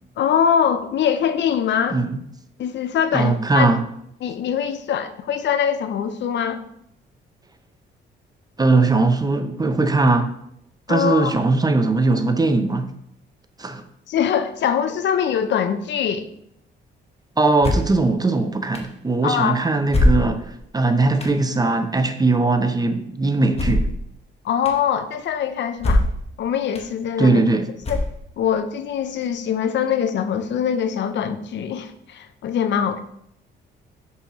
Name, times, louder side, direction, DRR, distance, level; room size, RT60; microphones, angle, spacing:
voice 1, 0.2-2.0 2.6-3.7 4.2-6.6 10.9-11.3 14.1-16.3 19.2-19.6 24.4-26.0 26.4-27.4 27.9-28.0 28.4-33.0, left 8 dB, 65° left, 0.6 m, -23 dB
voice 2, 3.1-3.8 8.6-10.3 10.9-12.9 13.6-13.8 17.4-23.9 27.2-27.7, right 3 dB, 20° right, 0.6 m, -19 dB
sound 1, 17.6-18.0 18.7-18.8 19.9-20.6 21.2-21.4 23.5-24.0 24.7-24.8 25.8-26.3 26.7-26.8 27.8-28.4, left 1 dB, 30° left, 1.2 m, -21 dB
6.3 x 5.5 x 3.0 m
cardioid pair, 90°, 20 cm